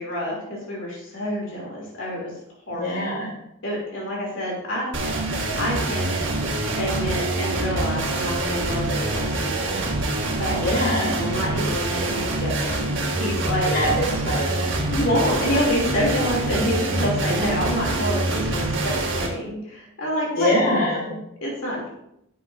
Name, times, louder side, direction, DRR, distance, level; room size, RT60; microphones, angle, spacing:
voice 1, 0.0-2.3 2.7-2.9 3.6-4.9 5.5-6.2 6.8-9.8 10.4-10.6 11.0-13.7 14.8-21.9, equal, 65° left, -4 dB, 3.1 m, -27 dB
voice 2, 2.7-3.3 10.6-11.2 13.7-14.7 20.3-21.1, left 1 dB, 45° left, -4 dB, 3.3 m, -23 dB
sound 1, 4.9-19.3, right 2 dB, 60° right, 1.9 m, -25 dB
12.0 x 8.5 x 2.7 m, 0.79 s
head